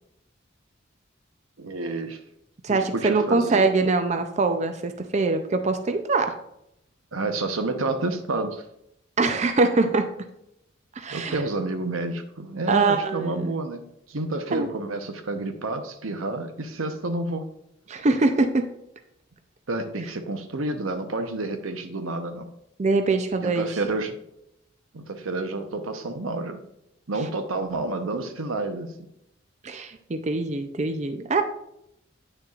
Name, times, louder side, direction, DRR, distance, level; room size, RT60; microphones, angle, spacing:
voice 1, 1.6-2.2 2.7-3.6 7.1-8.6 11.1-13.8 14.1-17.4 19.7-22.5 23.4-24.2 24.9-26.6 27.1-28.9, right 2 dB, 90° right, 7 dB, 0.8 m, -29 dB
voice 2, 2.6-6.3 9.2-10.1 11.0-11.4 12.7-13.5 14.5-14.7 17.9-18.6 22.8-23.7 27.2-27.3 29.6-31.4, right 3 dB, 35° right, 7 dB, 0.4 m, -23 dB
9.0 x 6.6 x 2.4 m, 0.79 s
head